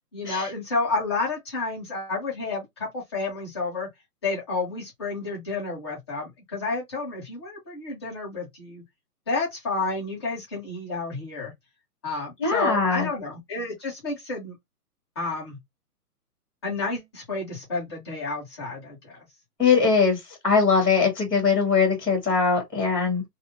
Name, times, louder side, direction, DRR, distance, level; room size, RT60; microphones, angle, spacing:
voice 1, 0.1-3.9 4.2-8.8 9.3-11.5 12.0-14.6 15.1-15.6 16.6-19.3, left 3 dB, 15° left, 1.1 m, -30 dB
voice 2, 12.4-13.1 19.6-20.2 20.4-23.2, left 5 dB, 5° right, 0.9 m, -21 dB
2.7 x 2.4 x 3.6 m
hypercardioid pair, 175°, 47 cm